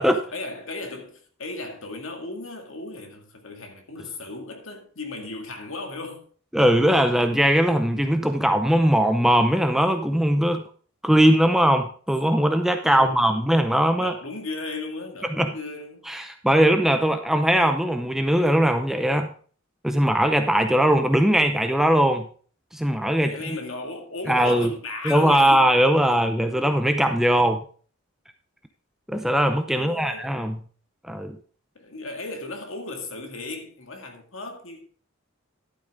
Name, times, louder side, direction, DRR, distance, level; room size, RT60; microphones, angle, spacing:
voice 1, 0.3-6.3 12.9-13.4 14.0-16.1 23.2-25.7 26.1-26.2 29.7-30.3 31.8-34.8, left 2 dB, 65° left, 2.1 m, -36 dB
voice 2, 6.5-10.6 11.0-14.1 15.4-15.5 16.1-19.3 19.8-22.3 22.7-23.3 24.3-24.7 25.0-27.6 29.1-30.6 31.1-31.4, equal, ahead, 0.6 m, -20 dB
11.5 x 8.6 x 3.7 m
head